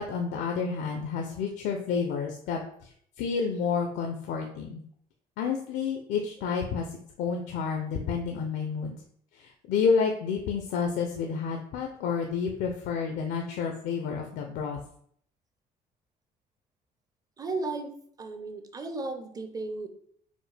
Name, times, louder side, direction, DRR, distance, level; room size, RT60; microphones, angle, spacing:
voice 1, 0.0-2.9 3.2-4.8 5.4-9.0 9.3-14.8, left 5 dB, 80° left, 3 dB, 0.5 m, -30 dB
voice 2, 17.4-17.9 18.2-19.9, right 3 dB, 20° right, 7 dB, 0.5 m, -34 dB
5.1 x 2.1 x 3.3 m, 0.63 s
cardioid pair, 110°, 17 cm